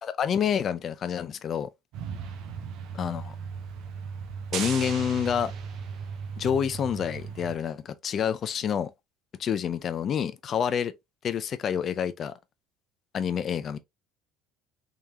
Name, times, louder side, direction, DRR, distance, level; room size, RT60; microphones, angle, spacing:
voice 1, 0.0-1.7 2.9-3.4 4.5-5.5 6.4-8.9 9.4-10.9 11.2-12.3 13.1-13.8, left 8 dB, 35° left, 0.5 m, -28 dB
Truck, 1.9-7.6, right 5 dB, 65° right, 1.0 m, -38 dB
sound 1, 4.5-6.3, right 7 dB, 50° right, 0.8 m, -37 dB
3.7 x 3.2 x 2.8 m
cardioid pair, 135°, 0 cm